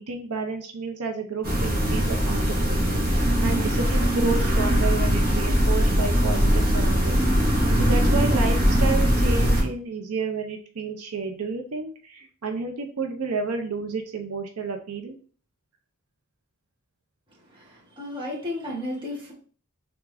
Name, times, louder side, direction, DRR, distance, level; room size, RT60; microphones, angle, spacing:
voice 1, 0.0-7.2 7.8-15.2, right 4 dB, 80° right, 4 dB, 0.6 m, -31 dB
sound 1, 1.4-9.6, equal, 45° right, 1.7 m, -21 dB
voice 2, 17.3-19.3, left 1 dB, 25° right, -4 dB, 1.6 m, -34 dB
3.6 x 3.5 x 3.3 m, 0.42 s
head